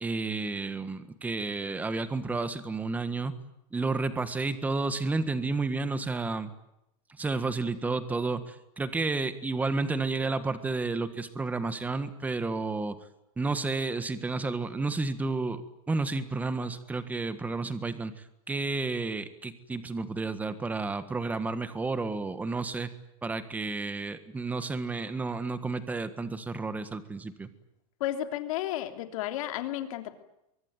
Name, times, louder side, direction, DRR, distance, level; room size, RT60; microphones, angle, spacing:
voice 1, 0.0-3.3 3.7-6.5 7.2-12.9 13.4-15.6 15.9-18.1 18.5-22.9 23.2-27.5, right 3 dB, 10° right, 12 dB, 1.5 m, -31 dB
voice 2, 28.0-30.2, left 13 dB, 65° left, 7 dB, 3.2 m, -32 dB
24.0 x 23.5 x 9.5 m, 0.86 s
supercardioid pair, 160°, 19 cm